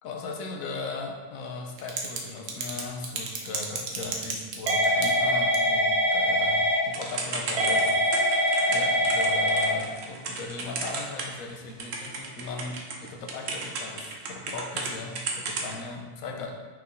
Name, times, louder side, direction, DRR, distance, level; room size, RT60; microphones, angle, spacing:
voice 1, 0.0-16.5, left 3 dB, 90° left, 2 dB, 1.0 m, -38 dB
Typing / Telephone, 1.8-2.2 2.5-11.5 11.8-14.9 15.2-15.7, equal, 65° right, 0.8 m, -25 dB
4.6 x 3.3 x 2.5 m, 1.3 s
omnidirectional pair, 1.4 m